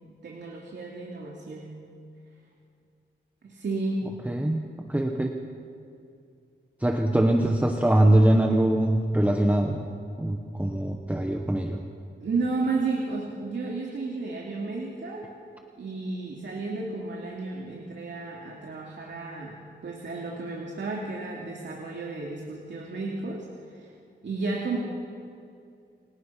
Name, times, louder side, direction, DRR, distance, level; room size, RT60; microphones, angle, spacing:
voice 1, 0.0-1.8 3.4-4.1 12.2-15.3 15.8-23.9 24.2-24.8, right 3 dB, 65° right, -2 dB, 2.8 m, -32 dB
voice 2, 4.3-4.6 4.9-5.4 6.8-9.9 10.2-11.8, right 1 dB, 5° right, 2 dB, 1.2 m, -23 dB
29.0 x 25.0 x 5.8 m, 2.4 s
wide cardioid pair, 175°, 20 cm